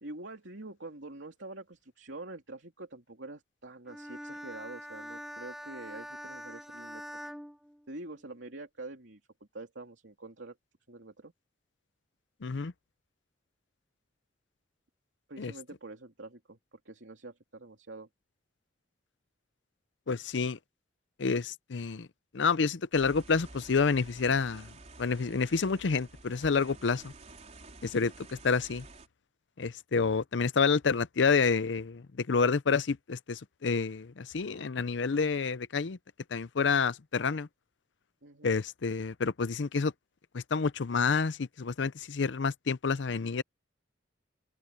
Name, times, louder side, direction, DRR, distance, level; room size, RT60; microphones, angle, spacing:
voice 1, 0.0-7.2 7.9-9.2 9.5-10.6 10.9-11.3 15.3-18.1 38.2-38.6, right 2 dB, 75° right, 3.0 m, -46 dB
Bowed string instrument, 3.9-8.4, equal, ahead, 3.1 m, -44 dB
voice 2, 12.4-12.7 15.4-15.5 20.1-20.6 21.2-22.1 22.3-27.1 27.8-28.9 29.6-36.0 36.3-37.5 38.4-39.9 40.3-43.4, left 5 dB, 70° left, 0.6 m, -29 dB
sound 1, 22.9-29.1, right 2 dB, 40° right, 4.4 m, -51 dB
head